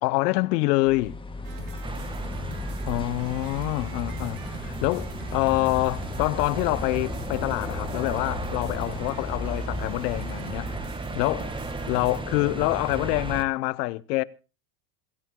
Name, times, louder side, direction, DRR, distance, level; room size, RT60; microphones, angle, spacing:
voice 1, 0.0-1.2 2.9-10.8 11.1-11.5 11.9-14.2, left 21 dB, 75° left, 1.0 m, -26 dB
sound 1, 0.8-10.9, left 3 dB, 10° left, 2.1 m, -36 dB
sound 2, 1.4-12.2, right 10 dB, 55° right, 3.2 m, -43 dB
sound 3, 1.8-13.4, right 2 dB, 10° right, 1.5 m, -35 dB
27.0 x 13.5 x 2.2 m
supercardioid pair, 135°, 49 cm